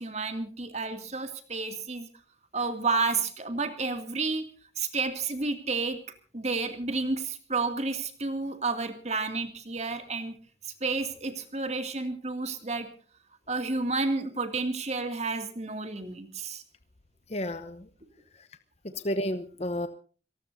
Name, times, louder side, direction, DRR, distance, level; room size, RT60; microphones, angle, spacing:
voice 1, 0.0-2.1 2.5-4.5 4.8-6.0 6.3-10.4 10.6-12.9 13.5-16.6 18.9-19.0, right 3 dB, 35° right, 7 dB, 2.3 m, -31 dB
voice 2, 17.3-17.8 19.0-19.9, equal, 35° left, 10 dB, 0.9 m, -31 dB
26.5 x 19.0 x 2.7 m, 0.42 s
head